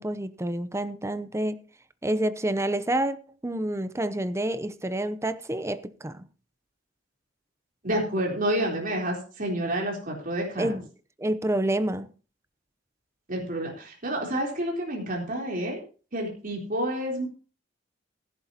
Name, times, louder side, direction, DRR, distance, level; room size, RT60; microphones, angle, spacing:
voice 1, 0.0-1.6 2.0-3.2 3.4-6.3 10.6-10.9 11.2-12.1, right 1 dB, 15° right, 0.7 m, -28 dB
voice 2, 7.8-10.7 13.3-15.8 16.1-17.3, right 1 dB, 45° right, 3.7 m, -29 dB
16.5 x 11.0 x 2.9 m
head